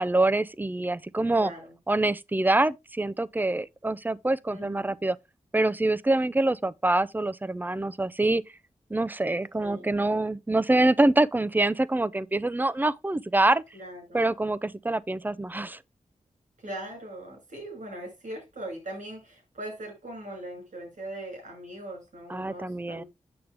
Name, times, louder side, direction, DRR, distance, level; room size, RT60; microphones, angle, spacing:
voice 1, 0.0-1.5 1.9-5.2 5.5-8.4 8.9-13.6 14.1-15.8 22.3-23.0, right 2 dB, 15° right, 0.5 m, -25 dB
voice 2, 1.4-1.7 4.5-5.0 9.6-9.9 13.7-14.3 16.6-23.1, right 1 dB, 75° right, 6.4 m, -40 dB
8.8 x 6.5 x 3.4 m
cardioid pair, 55°, 13 cm